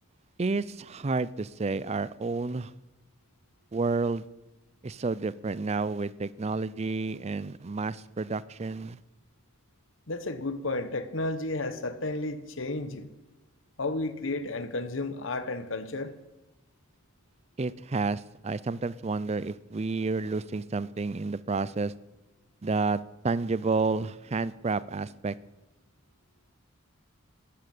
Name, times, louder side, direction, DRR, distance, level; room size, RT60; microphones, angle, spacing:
voice 1, 0.4-2.7 3.7-4.3 4.8-9.0 17.6-21.9 22.6-25.3, right 3 dB, 30° right, 0.5 m, -30 dB
voice 2, 10.1-13.1 13.8-16.1, left 2 dB, 70° left, 1.1 m, -32 dB
12.5 x 11.5 x 8.7 m
head